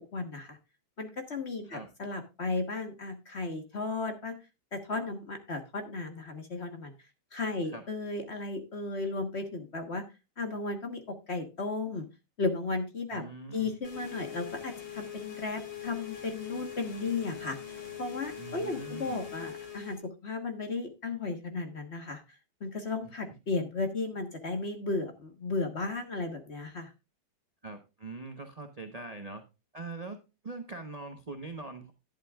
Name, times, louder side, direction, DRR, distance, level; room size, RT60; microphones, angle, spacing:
voice 1, 0.1-0.6 1.0-4.4 4.7-6.9 7.3-10.0 10.4-12.1 12.4-13.2 13.5-22.2 22.6-26.9, left 3 dB, 35° left, 6 dB, 1.4 m, -35 dB
voice 2, 13.1-13.8 18.4-19.2 23.0-23.4 27.6-29.4 29.7-31.9, right 3 dB, 35° right, 5 dB, 0.5 m, -43 dB
sound 1, 13.8-20.0, left 9 dB, 85° left, 3.1 m, -42 dB
11.5 x 11.0 x 2.4 m, 0.28 s
omnidirectional pair, 2.3 m